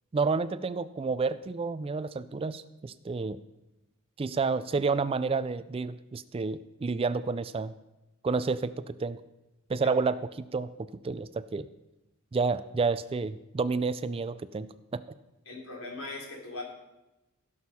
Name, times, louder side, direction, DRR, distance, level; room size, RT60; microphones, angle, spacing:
voice 1, 0.1-3.4 4.2-7.7 8.2-8.7 9.0-9.2 9.7-10.7 11.0-11.7 12.3-15.0, right 4 dB, 25° right, 14 dB, 0.3 m, -30 dB
voice 2, 15.5-16.6, left 2 dB, 80° left, -1 dB, 3.6 m, -39 dB
15.5 x 6.4 x 5.5 m, 0.97 s
head